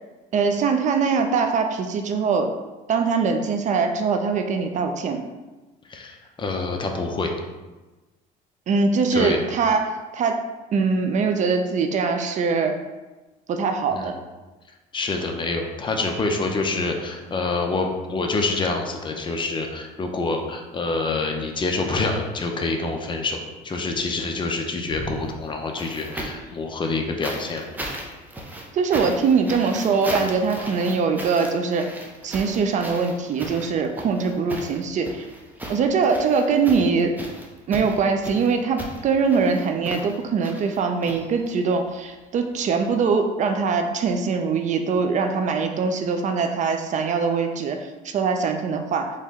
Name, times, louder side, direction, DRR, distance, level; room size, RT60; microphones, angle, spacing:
voice 1, 0.3-2.5 2.9-5.2 8.7-10.4 10.7-12.7 13.5-14.1 28.7-31.9 32.2-35.3 35.7-37.1 37.7-49.1, right 5 dB, 45° right, 5 dB, 0.4 m, -22 dB
voice 2, 5.9-7.3 9.1-9.4 13.9-14.1 14.9-27.7, left 3 dB, 30° left, 3 dB, 0.6 m, -26 dB
sound 1, 24.8-26.5 27.2-41.7 42.9-43.0, right 1 dB, 10° right, 0.7 m, -36 dB
4.3 x 3.0 x 3.6 m, 1.2 s
cardioid pair, 105°, 17 cm